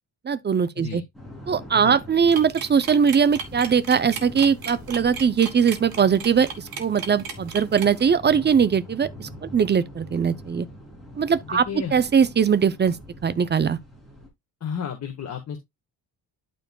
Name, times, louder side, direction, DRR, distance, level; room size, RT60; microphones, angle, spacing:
voice 1, 0.2-1.0 1.5-6.5 6.8-10.7 11.2-11.6 11.9-13.0 13.2-13.8, right 7 dB, 25° right, 0.5 m, -21 dB
sound 1, 1.1-14.3, equal, ahead, 3.3 m, -43 dB
sound 2, 2.3-8.0, right 6 dB, 55° right, 2.1 m, -35 dB
voice 2, 11.4-12.0 14.6-15.6, left 7 dB, 40° left, 1.6 m, -32 dB
11.5 x 4.6 x 2.3 m
cardioid pair, 135°, 42 cm